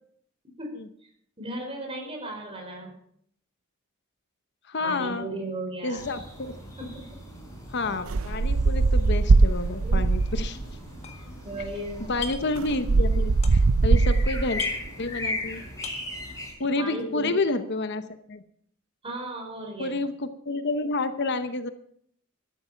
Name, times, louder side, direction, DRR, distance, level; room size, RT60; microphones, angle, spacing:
voice 1, 1.4-2.9 4.8-6.2 6.8-7.0 9.8-10.0 11.1-12.1 16.8-17.4 19.0-20.0, right 1 dB, 25° right, 1 dB, 5.0 m, -36 dB
voice 2, 4.7-5.3 5.8-6.6 7.7-10.6 12.1-14.6 15.0-15.6 16.6-18.0 18.3-18.4 19.8-21.7, left 2 dB, 55° left, 10 dB, 0.9 m, -29 dB
sound 1, 6.0-16.5, left 2 dB, 15° left, 5.0 m, -38 dB
sound 2, 8.1-10.6 11.6-11.7 12.0-14.6, right 3 dB, 80° right, 0.6 m, -21 dB
sound 3, 10.2-10.5 10.7-11.7 12.0-12.6 12.9-13.9 14.2-14.3 14.5-15.5 15.7-16.2, left 6 dB, 30° left, 1.8 m, -39 dB
13.0 x 13.0 x 5.8 m, 0.67 s
head